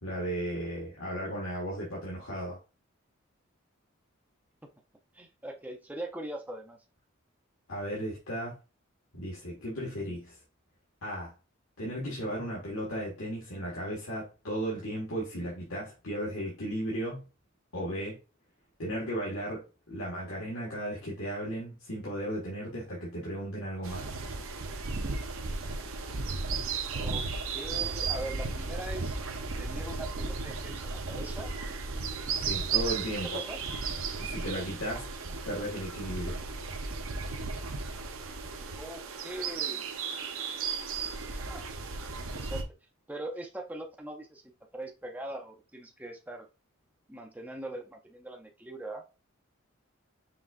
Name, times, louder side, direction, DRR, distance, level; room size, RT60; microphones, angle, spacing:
voice 1, 0.0-2.6 7.7-8.5 9.1-10.4 11.0-11.3 11.8-17.3 17.7-18.2 18.8-24.2 32.4-33.4 34.2-36.4, equal, 90° left, 1.7 m, -35 dB
voice 2, 5.1-6.8 26.9-27.3 27.5-29.2 29.6-31.5 33.2-33.6 38.8-39.9 41.5-41.7 42.3-42.7 43.1-44.4 44.7-46.5 47.1-49.0, right 1 dB, 10° right, 0.6 m, -41 dB
sound 1, 23.8-42.6, right 4 dB, 75° right, 0.8 m, -35 dB
5.7 x 3.5 x 2.5 m
head